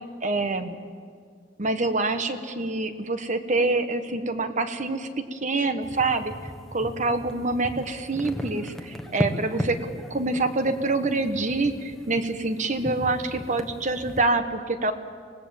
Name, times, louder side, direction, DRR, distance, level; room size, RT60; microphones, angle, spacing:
voice 1, 0.2-0.8 1.6-6.3 6.7-9.8 10.1-14.9, right 3 dB, 40° right, 9 dB, 1.2 m, -26 dB
sound 1, 5.8-14.2, equal, ahead, 1.3 m, -36 dB
24.5 x 18.5 x 7.3 m, 2.1 s
head